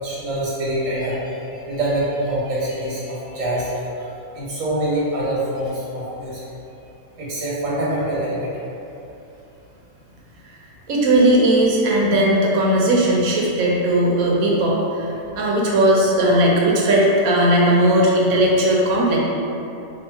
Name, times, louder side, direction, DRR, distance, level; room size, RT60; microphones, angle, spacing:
voice 1, 0.0-1.3 1.6-3.7 4.3-6.4 7.2-8.5, right 1 dB, 65° right, -7 dB, 1.4 m, -25 dB
voice 2, 10.9-19.2, right 1 dB, 80° right, -3 dB, 1.1 m, -17 dB
2.8 x 2.8 x 4.4 m, 2.8 s
omnidirectional pair, 1.5 m